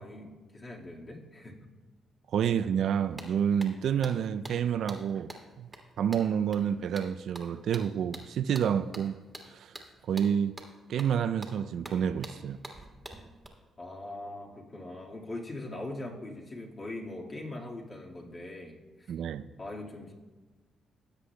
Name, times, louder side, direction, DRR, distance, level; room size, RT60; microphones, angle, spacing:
voice 1, 0.0-1.6 13.8-19.1 19.6-20.1, left 2 dB, 30° left, 1.8 m, -41 dB
voice 2, 2.3-5.7 6.0-9.2 9.5-9.7 10.1-10.6 10.9-12.6 19.1-19.4, right 8 dB, 70° right, 0.3 m, -29 dB
sound 1, 2.8-2.9 3.2-13.5, right 1 dB, 10° right, 1.6 m, -47 dB
16.5 x 8.2 x 2.2 m
cardioid pair, 90°, 0 cm